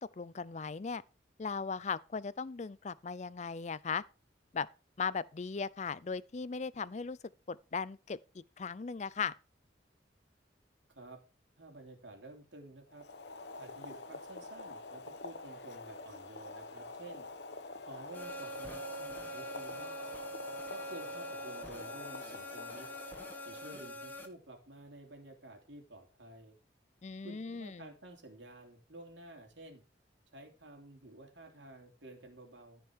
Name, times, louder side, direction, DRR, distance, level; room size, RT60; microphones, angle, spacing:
voice 1, 0.2-1.0 1.4-4.0 4.5-4.7 5.0-7.2 7.5-9.3 27.0-27.9, left 5 dB, 40° left, 0.4 m, -38 dB
voice 2, 11.6-13.0 13.6-17.3 17.8-19.9 20.7-22.9 23.4-26.6 27.2-29.8 30.3-32.8, right 2 dB, 75° right, 3.1 m, -52 dB
Boiling, 12.9-23.9, left 3 dB, 65° left, 1.0 m, -47 dB
sound 1, 18.1-24.3, equal, 10° left, 1.5 m, -44 dB
14.5 x 5.3 x 4.7 m
head